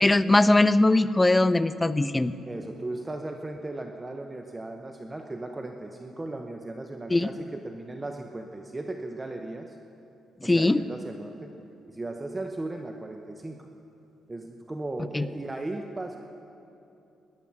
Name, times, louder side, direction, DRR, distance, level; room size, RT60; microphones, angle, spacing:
voice 1, 0.0-2.3 7.1-7.3 10.4-10.8 15.1-15.3, left 2 dB, 15° left, 14 dB, 0.5 m, -21 dB
voice 2, 2.5-9.8 10.4-11.5 11.9-13.7 14.3-16.2, right 2 dB, 20° right, 4 dB, 0.8 m, -37 dB
18.0 x 11.0 x 6.0 m, 2.8 s
cardioid pair, 90°, 0 cm